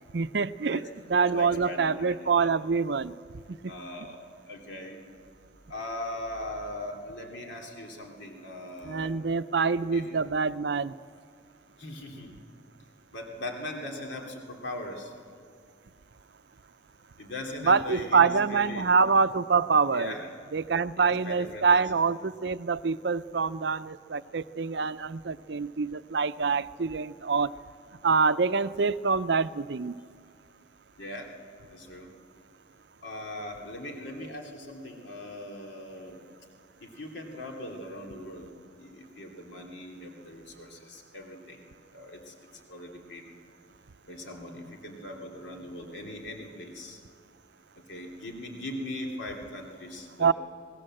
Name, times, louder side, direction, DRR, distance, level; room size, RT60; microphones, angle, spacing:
voice 1, 0.1-0.8 1.1-3.1 3.5-3.7 8.8-10.9 17.6-20.1 20.5-27.5 28.0-30.0 50.2-50.3, right 5 dB, 60° right, 14 dB, 0.6 m, -25 dB
voice 2, 0.7-2.5 3.7-4.2 4.5-5.0 5.7-9.1 9.6-9.7 9.9-10.0 11.8-12.3 13.1-15.1 17.2-18.8 19.9-20.3 21.0-21.8 31.0-31.3 31.7-32.1 33.0-36.2 36.8-38.5 38.8-41.6 41.9-42.3 42.7-43.2 44.1-47.0 47.9-50.3, left 1 dB, 65° left, 1 dB, 3.0 m, -40 dB
27.5 x 20.5 x 7.7 m, 2.2 s
head